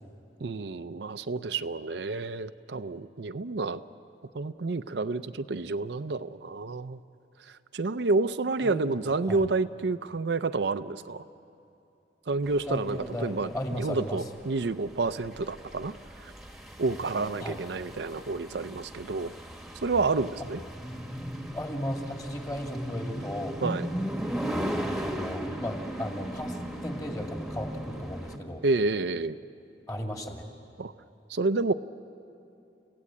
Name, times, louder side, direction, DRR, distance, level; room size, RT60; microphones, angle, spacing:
voice 1, 0.4-3.8 4.3-7.0 7.5-11.2 12.3-16.3 16.8-19.3 19.8-20.6 23.6-23.9 28.6-29.4 30.8-30.9 31.3-31.7, right 3 dB, 80° right, 11 dB, 0.6 m, -29 dB
sound 1, 12.5-28.4, equal, ahead, 1.3 m, -37 dB
voice 2, 12.7-14.2 17.4-17.6 21.5-23.6 25.0-28.6 29.9-30.4, equal, 20° left, 3 dB, 2.0 m, -35 dB
30.0 x 16.0 x 8.6 m, 2.7 s
head